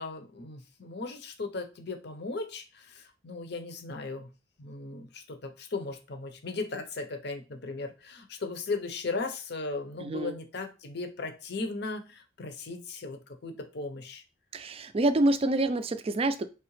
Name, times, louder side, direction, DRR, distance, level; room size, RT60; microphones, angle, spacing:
voice 1, 0.0-4.3 4.6-14.2, left 3 dB, 60° left, 7 dB, 0.8 m, -37 dB
voice 2, 10.0-10.3 14.5-16.5, right 2 dB, 30° right, 10 dB, 0.4 m, -27 dB
4.8 x 3.1 x 3.1 m, 0.31 s
head